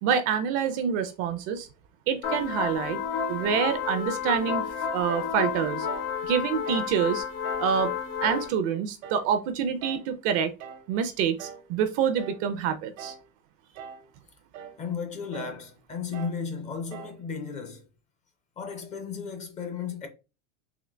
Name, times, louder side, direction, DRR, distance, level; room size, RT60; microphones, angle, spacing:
voice 1, 0.0-1.7 2.1-3.0 3.3-4.6 4.9-5.9 6.2-7.2 7.6-7.9 8.2-10.5 10.9-13.1, right 7 dB, 40° right, 0.4 m, -26 dB
sound 1, 2.2-8.5, left 7 dB, 80° left, 1.4 m, -31 dB
sound 2, 5.1-5.4 5.9-6.1 6.7-7.0 7.4-7.7 8.2-8.5 9.0-9.3 9.8-10.1 10.6-10.9 11.4-11.7 12.2-12.5 13.0-13.3 13.8-14.1 14.5-14.8 15.3-15.6 16.1-16.4 16.9-17.2, right 7 dB, 80° right, 0.9 m, -43 dB
voice 2, 14.8-17.9 18.6-20.1, left 6 dB, 20° left, 0.4 m, -34 dB
3.8 x 2.6 x 3.3 m
supercardioid pair, 155°, 38 cm